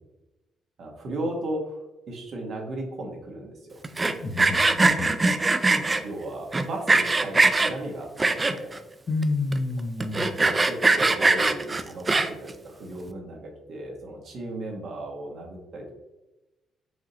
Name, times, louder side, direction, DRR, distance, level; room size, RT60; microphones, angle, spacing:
voice 1, 0.8-3.7 5.7-8.8 10.0-16.0, right 1 dB, 60° right, 0 dB, 1.3 m, -36 dB
Sawing, 3.8-6.0 6.5-7.7 8.2-8.8 9.2-9.3 9.5-9.6 10.0-12.5, right 3 dB, 25° right, 0.4 m, -21 dB
voice 2, 4.2-5.2 9.1-10.4, left 2 dB, 45° left, 7 dB, 0.6 m, -29 dB
4.9 x 2.6 x 4.2 m, 1.0 s
cardioid pair, 90°, 0 cm